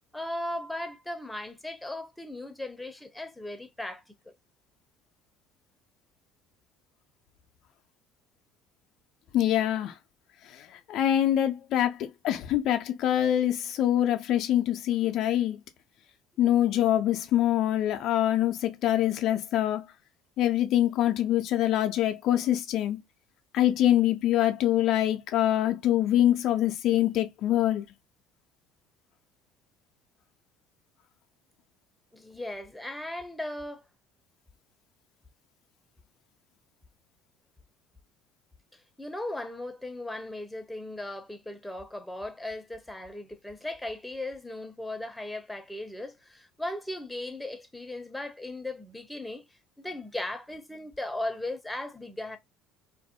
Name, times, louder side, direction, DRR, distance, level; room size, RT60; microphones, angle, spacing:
voice 1, 0.1-4.3 32.1-33.8 38.7-49.4 49.8-52.4, left 1 dB, 5° left, 0.6 m, -37 dB
voice 2, 9.3-10.0 10.5-15.6 16.4-19.8 20.4-23.0 23.5-27.9, left 12 dB, 60° left, 0.3 m, -25 dB
2.3 x 2.0 x 2.7 m
hypercardioid pair, 70°, 0 cm